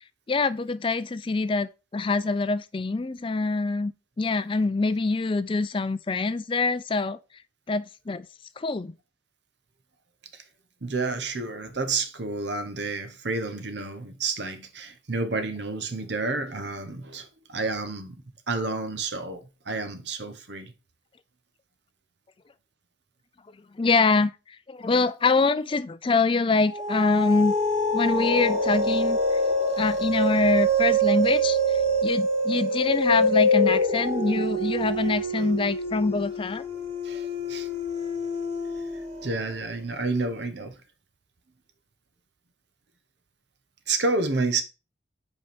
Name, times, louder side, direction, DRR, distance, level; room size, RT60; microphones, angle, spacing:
voice 1, 0.3-7.2 7.7-8.3 8.6-8.9 23.8-24.3 24.7-27.5 27.9-29.4 29.8-31.6 32.0-36.6, left 3 dB, 25° left, 0.4 m, -25 dB
voice 2, 10.8-18.2 18.5-20.7 35.4-35.5 37.0-37.7 38.8-38.9 39.2-40.8 43.9-44.6, right 3 dB, 60° right, 0.9 m, -30 dB
sound 1, 26.7-39.5, equal, 35° right, 1.7 m, -25 dB
5.2 x 4.8 x 5.1 m
head